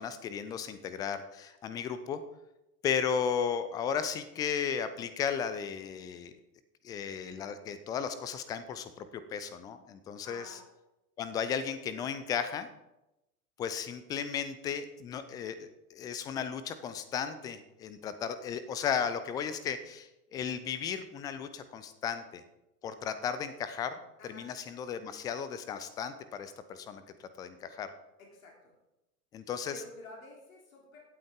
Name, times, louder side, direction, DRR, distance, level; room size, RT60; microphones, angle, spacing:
voice 1, 0.0-2.2 2.8-6.3 6.8-10.6 11.2-12.7 13.6-22.4 22.8-23.9 24.2-27.9 29.3-29.7, left 7 dB, 10° left, 12 dB, 0.3 m, -35 dB
voice 2, 10.2-10.6 24.2-24.5 28.3-28.7 29.7-31.0, left 2 dB, 60° left, -1 dB, 3.4 m, -50 dB
16.0 x 8.8 x 3.7 m, 0.93 s
figure-of-eight pair, 90°, 45 cm